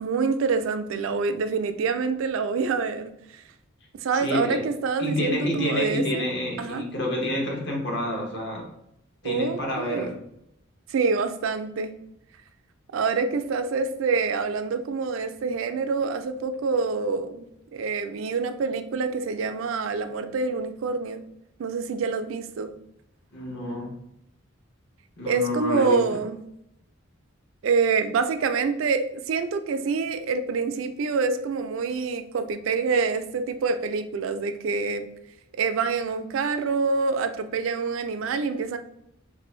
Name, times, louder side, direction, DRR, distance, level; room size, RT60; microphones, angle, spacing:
voice 1, 0.0-3.4 3.9-6.3 6.6-6.8 9.2-10.1 10.9-11.9 12.9-21.2 21.6-22.7 25.3-26.4 27.6-35.0 35.5-38.8, right 4 dB, 75° right, 9 dB, 0.3 m, -26 dB
voice 2, 4.2-4.6 5.0-8.7 9.2-10.1 23.3-23.9 25.2-26.0, left 1 dB, 60° left, 0 dB, 0.9 m, -28 dB
3.2 x 2.6 x 3.0 m, 0.78 s
head